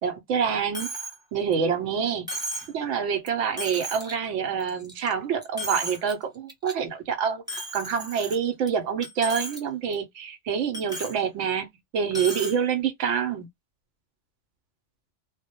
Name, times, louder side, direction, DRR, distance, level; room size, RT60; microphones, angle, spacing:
voice 1, 0.0-0.9 1.3-2.3 2.7-11.7 11.9-13.5, right 7 dB, 90° right, 0.9 m, -27 dB
Coin (dropping), 0.7-1.2 1.5-1.6 2.3-2.7 3.3-3.4 3.6-4.1 4.6-5.1 5.4-6.1 6.5-6.7 7.5-8.7 9.0-9.6 9.9-10.0 10.7-11.2 12.1-12.6, right 1 dB, 5° right, 0.4 m, -34 dB
2.1 x 2.0 x 2.8 m
omnidirectional pair, 1.2 m